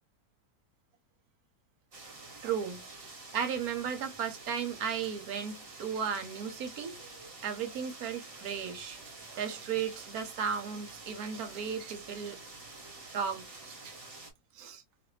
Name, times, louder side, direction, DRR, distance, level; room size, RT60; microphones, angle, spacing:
sound 1, 1.9-14.3, right 3 dB, 40° right, 0.9 m, -48 dB
voice 1, 2.4-2.8 3.3-7.0 7.4-9.0 9.3-12.4 13.1-13.9 14.5-14.8, right 7 dB, 65° right, 1.1 m, -35 dB
2.7 x 2.5 x 3.0 m
omnidirectional pair, 1.9 m